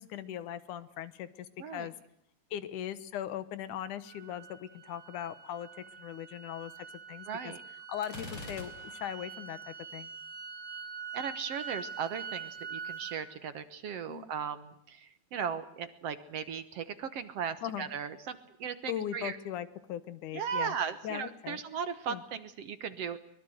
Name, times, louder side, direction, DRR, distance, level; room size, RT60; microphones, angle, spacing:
voice 1, 0.0-1.9 2.5-5.7 6.0-7.5 7.9-10.1 14.1-14.3 17.6-17.9 18.9-20.8 21.0-21.6 22.1-22.2, left 10 dB, 80° left, 15 dB, 2.6 m, -39 dB
sound 1, 4.1-13.2, right 6 dB, 30° right, 4.3 m, -44 dB
voice 2, 7.3-7.6 11.1-19.4 20.3-23.2, right 7 dB, 60° right, 12 dB, 2.0 m, -37 dB
Gunshot gunfire, 8.0-9.3, left 2 dB, 45° left, 5.3 m, -45 dB
23.5 x 21.5 x 8.0 m, 0.71 s
omnidirectional pair, 3.6 m